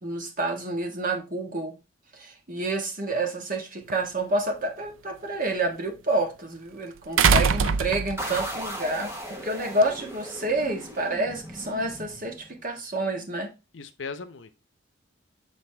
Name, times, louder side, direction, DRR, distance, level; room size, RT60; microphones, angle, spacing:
voice 1, 0.0-1.7 2.1-13.5, right 2 dB, 45° right, 1.6 m, -29 dB
sound 1, 3.9-4.0 7.2-8.5 9.8-9.9, right 6 dB, 85° right, 0.5 m, -21 dB
voice 2, 7.1-7.8 13.7-14.5, left 4 dB, 65° left, 0.7 m, -39 dB
sound 2, 8.2-12.7, equal, 15° right, 1.3 m, -37 dB
7.6 x 4.1 x 3.3 m
head